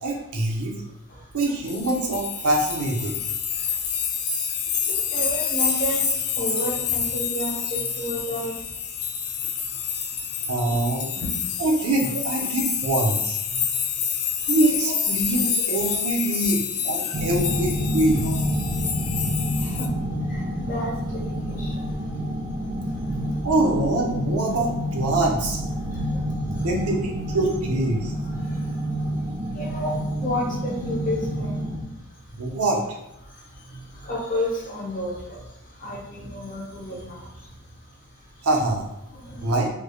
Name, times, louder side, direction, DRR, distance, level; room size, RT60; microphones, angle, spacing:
voice 1, 0.0-0.8 1.3-3.2 10.5-11.1 11.6-13.4 14.5-16.6 16.8-18.2 23.4-25.6 26.6-27.0 27.3-28.1 32.4-32.8 38.4-38.9 39.4-39.7, right 2 dB, 75° right, 0 dB, 0.8 m, -24 dB
voice 2, 0.6-1.4 3.2-10.7 11.1-11.7 13.5-14.5 14.8-14.9 15.8-15.9 17.0-17.2 18.2-18.3 18.6-23.5 25.8-26.7 28.0-32.6 33.2-38.5 39.1-39.5, equal, 35° left, -4 dB, 1.0 m, -34 dB
sound 1, 1.7-19.9, left 7 dB, 70° left, 0.4 m, -28 dB
sound 2, 17.1-31.8, equal, 25° right, 0.4 m, -28 dB
3.4 x 3.2 x 2.3 m, 0.90 s
head